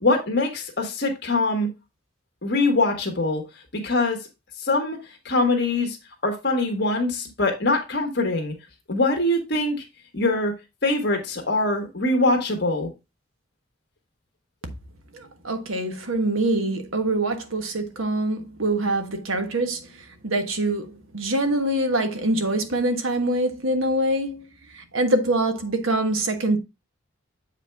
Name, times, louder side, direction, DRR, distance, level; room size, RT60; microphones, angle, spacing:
voice 1, 0.0-1.7 2.4-3.4 3.7-4.2 4.6-5.0 5.2-6.0 6.2-8.5 8.9-9.8 10.1-10.5 10.8-12.9, left 2 dB, 55° left, 1.6 m, -23 dB
voice 2, 15.1-26.6, right 1 dB, 80° right, 1.3 m, -24 dB
7.8 x 4.9 x 3.5 m
head